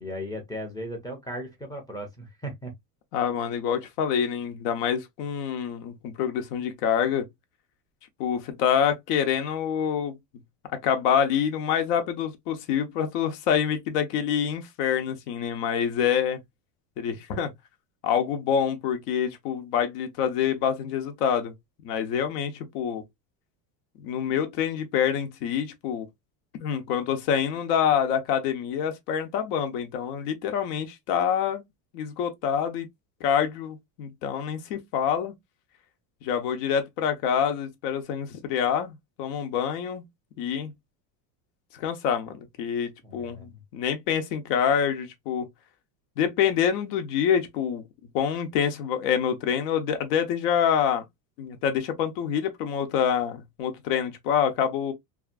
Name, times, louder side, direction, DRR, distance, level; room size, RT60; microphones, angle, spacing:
voice 1, 0.0-2.7 43.0-43.6, equal, 10° left, 0.4 m, -36 dB
voice 2, 3.1-7.3 8.2-10.2 10.8-16.4 17.0-17.5 18.0-21.5 21.8-23.0 24.0-26.1 26.6-31.6 31.9-32.9 33.2-35.3 36.2-40.1 40.4-40.7 41.7-45.5 46.2-47.8 48.1-51.0 51.4-54.9, left 8 dB, 85° left, 0.9 m, -26 dB
2.8 x 2.4 x 2.4 m
cardioid pair, 150°, 46 cm